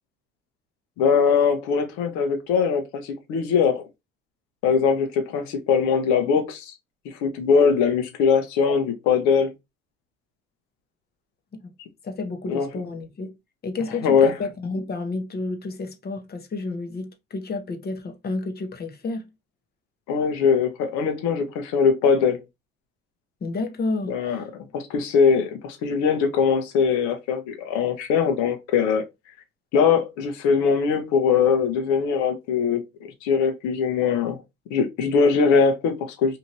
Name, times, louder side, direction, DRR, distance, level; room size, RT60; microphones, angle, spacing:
voice 1, 1.0-3.9 4.6-6.7 7.2-9.5 12.5-12.7 14.0-14.3 20.1-22.4 24.1-24.4 24.7-29.0 29.7-32.8 33.2-34.4 34.7-36.4, left 6 dB, 75° left, 0.8 m, -21 dB
voice 2, 12.0-13.3 13.6-19.3 23.4-24.5, left 3 dB, 35° left, 0.8 m, -31 dB
2.8 x 2.5 x 2.9 m
supercardioid pair, 75°, 29 cm